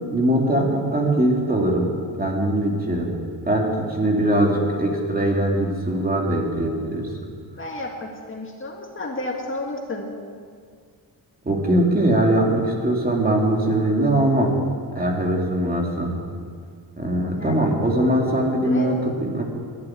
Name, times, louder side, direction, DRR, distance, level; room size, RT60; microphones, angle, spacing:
voice 1, 0.1-1.9 2.2-3.2 3.5-7.1 11.4-14.5 14.9-16.2 17.0-19.4, right 1 dB, 25° right, 0 dB, 2.7 m, -21 dB
voice 2, 7.6-10.1 17.3-17.7 18.6-19.0, left 2 dB, 30° left, 0 dB, 2.0 m, -32 dB
12.5 x 11.5 x 9.9 m, 2.1 s
wide cardioid pair, 130°, 38 cm